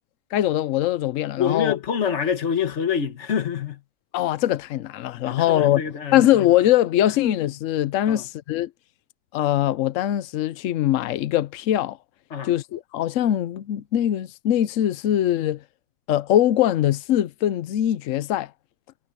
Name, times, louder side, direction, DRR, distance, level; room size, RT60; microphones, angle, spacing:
voice 1, 0.3-1.8 4.1-5.8 6.1-8.7 9.3-12.0 12.4-15.6 16.1-18.5, left 12 dB, 85° left, 0.7 m, -22 dB
voice 2, 1.4-3.8 5.2-6.3 8.1-8.3 12.3-12.5, left 7 dB, 40° left, 1.4 m, -26 dB
omnidirectional pair, 2.1 m